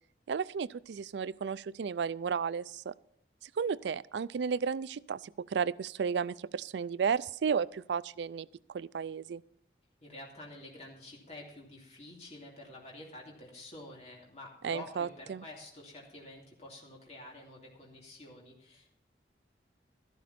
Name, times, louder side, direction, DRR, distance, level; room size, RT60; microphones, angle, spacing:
voice 1, 0.3-2.9 3.4-9.4 14.6-15.4, right 6 dB, 80° right, 19 dB, 0.4 m, -33 dB
voice 2, 10.0-18.9, left 1 dB, 35° left, -2 dB, 2.8 m, -49 dB
13.0 x 12.0 x 4.2 m, 0.71 s
head